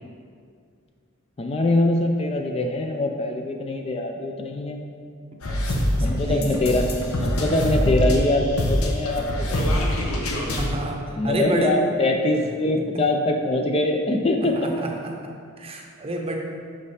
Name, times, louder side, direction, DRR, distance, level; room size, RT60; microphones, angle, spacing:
voice 1, 1.4-4.8 6.0-6.9 7.2-9.8 11.2-14.7, left 2 dB, 25° left, 3 dB, 0.4 m, -23 dB
sound 1, 5.4-10.7, left 1 dB, 75° left, 0.8 m, -24 dB
voice 2, 5.5-6.5 10.2-11.7 14.6-16.4, right 1 dB, 25° right, 1 dB, 0.7 m, -30 dB
6.1 x 5.2 x 4.1 m, 2.2 s
head